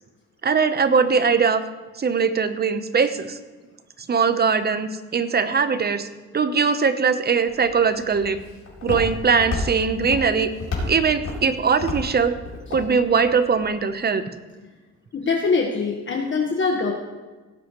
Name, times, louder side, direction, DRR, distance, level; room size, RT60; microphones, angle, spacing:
voice 1, 0.4-1.6 2.0-3.4 4.1-6.1 6.3-8.4 8.8-10.5 10.8-12.3 12.7-14.2, right 5 dB, 30° right, 10 dB, 0.9 m, -21 dB
Walk footsteps, 7.5-13.7, left 3 dB, 60° left, 3.8 m, -32 dB
voice 2, 15.1-16.9, left 4 dB, 40° left, 1 dB, 1.4 m, -23 dB
17.5 x 7.9 x 3.1 m, 1.3 s
cardioid pair, 90°, 30 cm